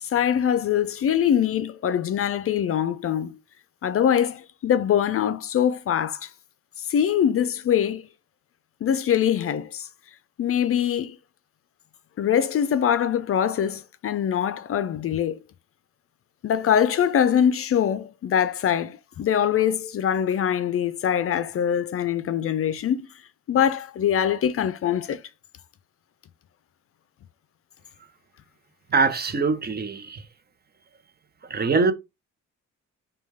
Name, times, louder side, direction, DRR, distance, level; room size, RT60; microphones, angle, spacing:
voice 1, 0.0-3.4 3.8-6.3 6.8-8.0 8.8-9.9 10.4-11.2 12.2-15.4 16.4-23.1 23.5-25.2, left 9 dB, 50° left, 0.5 m, -23 dB
voice 2, 28.9-30.2 31.5-31.9, right 4 dB, 30° right, 0.7 m, -23 dB
5.2 x 2.3 x 3.4 m
cardioid pair, 90°, 30 cm